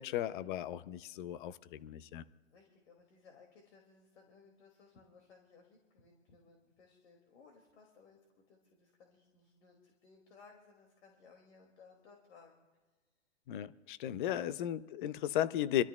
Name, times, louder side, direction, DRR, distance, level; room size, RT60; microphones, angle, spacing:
voice 1, 0.0-2.2 13.5-15.8, left 11 dB, 45° left, 15 dB, 0.6 m, -35 dB
voice 2, 2.5-8.2 8.5-12.7 14.3-14.5, left 4 dB, 65° left, 2 dB, 2.5 m, -61 dB
27.0 x 13.0 x 2.3 m, 1.3 s
hypercardioid pair, 135°, 37 cm